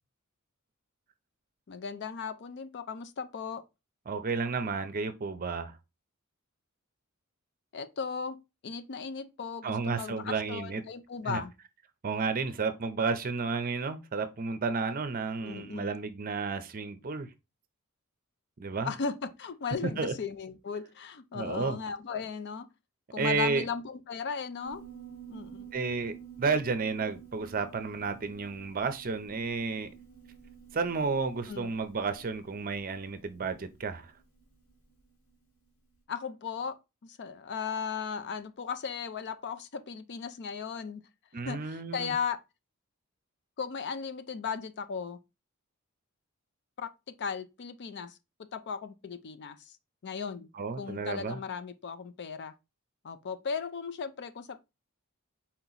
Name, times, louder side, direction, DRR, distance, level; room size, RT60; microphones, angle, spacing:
voice 1, 1.7-3.6 7.7-11.5 15.4-15.9 18.8-22.7 23.1-24.8 25.3-25.6 31.5-31.8 36.1-36.8 37.0-41.0 41.4-42.4 43.6-45.2 46.8-48.1 48.4-49.7 50.0-50.5 50.8-52.5 53.0-54.6, left 6 dB, 55° left, 0.5 m, -36 dB
voice 2, 4.1-5.7 9.6-10.8 11.2-11.4 12.0-17.3 18.6-18.9 19.8-20.1 21.3-21.8 23.2-23.6 25.7-29.9 30.7-34.1 41.3-42.1 50.5-51.4, right 4 dB, 40° right, 0.6 m, -32 dB
Piano, 24.6-35.3, right 8 dB, 75° left, 1.6 m, -51 dB
4.4 x 2.9 x 3.9 m
head